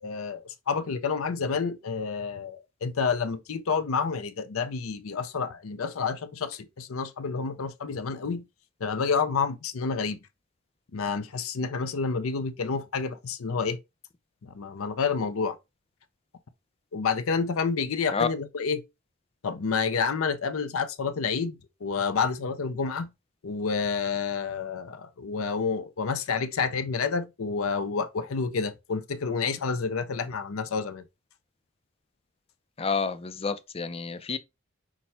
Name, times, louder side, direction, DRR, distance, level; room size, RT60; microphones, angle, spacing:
voice 1, 0.0-8.4 8.8-10.2 10.9-13.8 14.4-15.5 16.9-18.8 19.4-23.1 23.4-31.0, left 5 dB, 85° left, 0.6 m, -29 dB
voice 2, 32.8-34.4, left 5 dB, 30° left, 0.5 m, -29 dB
6.0 x 2.2 x 4.1 m
head